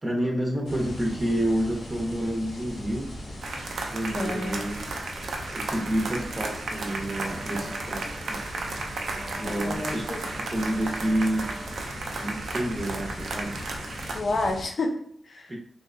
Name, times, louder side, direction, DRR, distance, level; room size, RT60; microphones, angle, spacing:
voice 1, 0.0-3.2 3.8-4.9 5.5-8.4 9.4-11.5 12.2-13.6 15.5-15.6, right 1 dB, 25° right, -1 dB, 0.6 m, -29 dB
sound 1, 0.6-14.7, left 1 dB, 90° left, 0.9 m, -40 dB
sound 2, 3.4-14.2, right 3 dB, 80° right, 0.3 m, -34 dB
voice 2, 4.1-4.7 9.4-10.2 14.1-15.5, left 2 dB, 55° left, 2 dB, 0.5 m, -30 dB
Wind instrument woodwind instrument, 7.0-12.1, right 1 dB, 15° left, 0.6 m, -45 dB
2.6 x 2.1 x 2.5 m, 0.63 s
cardioid pair, 75°, 0 cm